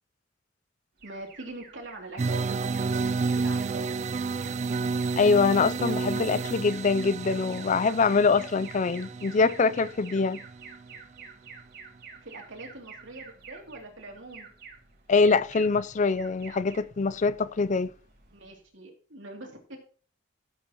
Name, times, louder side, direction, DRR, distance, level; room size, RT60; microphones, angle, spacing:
Alarm, 1.0-18.6, right 5 dB, 60° right, 2.7 m, -50 dB
voice 1, 1.0-3.9 12.2-14.5 18.3-19.8, right 2 dB, 85° right, 2.8 m, -43 dB
sound 1, 2.2-11.0, right 4 dB, 40° right, 0.4 m, -31 dB
voice 2, 5.2-10.4 15.1-17.9, left 4 dB, 40° left, 0.4 m, -24 dB
15.5 x 8.3 x 3.0 m
head